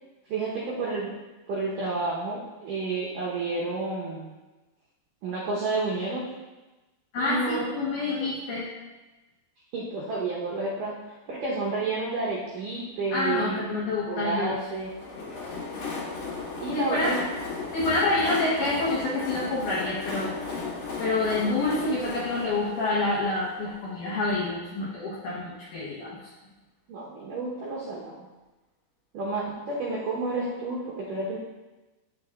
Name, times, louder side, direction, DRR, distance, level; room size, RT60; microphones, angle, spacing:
voice 1, 0.3-1.2 1.5-4.3 5.2-6.4 7.2-7.7 8.0-8.3 9.7-10.9 11.3-13.7 14.1-14.9 16.6-17.2 26.9-28.1 29.1-31.4, right 3 dB, 85° right, -5 dB, 1.8 m, -30 dB
voice 2, 7.1-8.7 13.1-14.6 16.7-17.1 17.7-20.4 21.0-26.3, left 2 dB, 90° left, -5 dB, 1.8 m, -27 dB
Train, 14.7-24.4, left 4 dB, 65° left, 1.8 m, -35 dB
9.4 x 6.8 x 2.4 m, 1.1 s
omnidirectional pair, 5.2 m